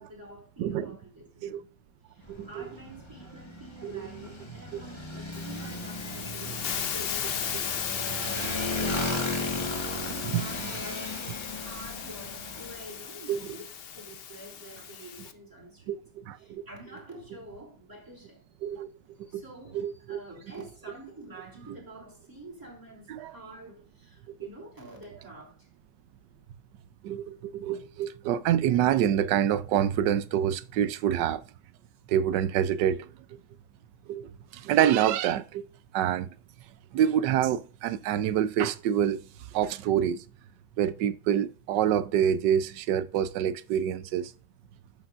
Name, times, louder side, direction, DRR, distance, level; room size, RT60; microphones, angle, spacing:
voice 1, 0.0-1.6 2.1-7.8 8.6-13.6 13.9-15.9 16.4-18.4 19.2-25.7, right 1 dB, 10° right, 3.2 m, -48 dB
voice 2, 0.6-0.9 1.4-1.6 2.3-2.6 3.8-4.0 4.7-4.8 10.3-10.4 13.3-13.6 15.9-16.6 18.6-18.9 19.2-19.4 19.7-20.2 23.1-23.4 24.3-24.4 27.0-31.4 32.1-33.4 34.1-35.7 35.9-36.3 36.9-39.2 39.5-40.2 40.8-44.3, right 10 dB, 90° right, 1.3 m, -27 dB
Motorcycle, 2.2-12.9, left 1 dB, 15° left, 1.4 m, -36 dB
Hiss, 5.3-15.3, left 8 dB, 60° left, 0.6 m, -36 dB
11.5 x 7.0 x 2.5 m
omnidirectional pair, 1.8 m